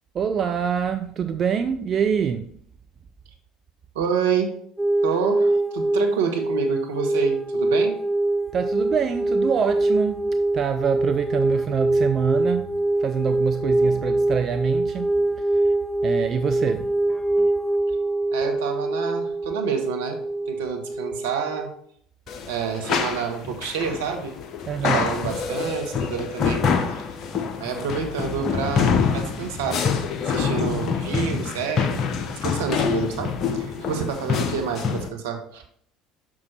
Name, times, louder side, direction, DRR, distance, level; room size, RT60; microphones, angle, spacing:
voice 1, 0.1-2.5 8.5-10.2 10.5-12.7 13.0-15.1 16.0-16.9 24.7-25.0, right 7 dB, 40° right, 0.5 m, -25 dB
voice 2, 3.9-4.5 5.0-7.9 18.3-20.2 20.5-21.7 22.5-24.4 24.8-26.6 26.9-27.0 27.6-29.8 30.2-32.0 32.4-35.6, right 6 dB, 75° right, 1.3 m, -28 dB
sound 1, 4.8-21.7, right 2 dB, ahead, 0.8 m, -24 dB
sound 2, 22.3-35.1, left 6 dB, 50° left, 0.9 m, -26 dB
6.2 x 6.1 x 4.4 m
hypercardioid pair, 65°, 0 cm